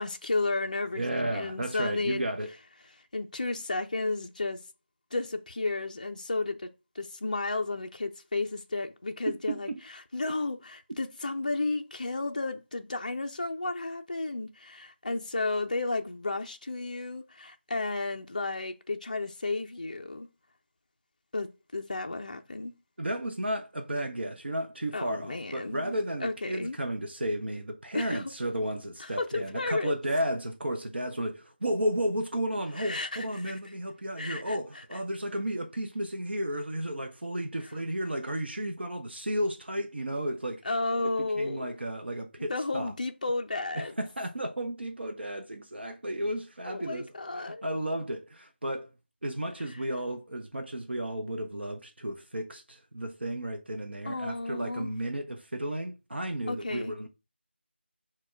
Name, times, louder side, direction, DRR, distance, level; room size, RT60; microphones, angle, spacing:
voice 1, 0.0-2.3 2.9-4.6 5.1-6.7 7.0-9.7 10.1-20.3 21.3-22.7 24.9-26.8 27.9-28.3 29.0-29.9 32.8-33.6 34.2-34.8 40.6-41.7 42.5-43.9 46.7-47.6 54.1-54.9 56.5-56.9, left 3 dB, 40° left, 0.3 m, -33 dB
voice 2, 0.9-2.5 9.3-9.8 23.0-40.8 41.0-42.9 43.7-47.1 47.4-48.9 49.2-57.1, right 1 dB, 65° right, 0.6 m, -33 dB
4.2 x 2.2 x 4.3 m
figure-of-eight pair, 170°, 6 cm